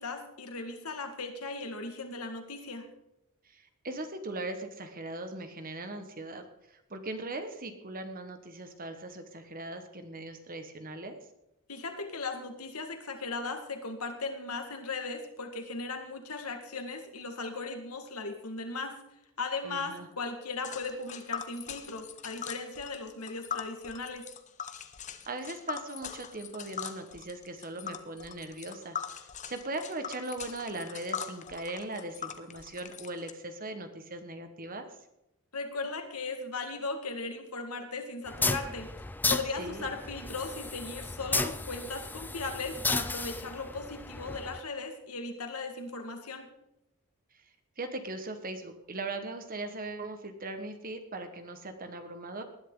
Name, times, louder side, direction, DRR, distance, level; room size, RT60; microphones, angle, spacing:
voice 1, 0.0-2.9 11.7-18.9 19.4-24.2 35.5-38.9 39.3-46.5, left 3 dB, 85° left, 5 dB, 2.0 m, -37 dB
voice 2, 3.5-6.4 6.7-11.2 19.6-20.1 25.3-29.0 29.5-34.9 39.6-39.9 47.8-52.4, right 2 dB, 40° right, 7 dB, 1.5 m, -39 dB
Tick, 20.6-33.3, left 8 dB, 35° left, 0.9 m, -41 dB
sound 1, 38.3-44.6, left 3 dB, 10° left, 0.4 m, -34 dB
19.5 x 10.5 x 3.9 m, 0.87 s
head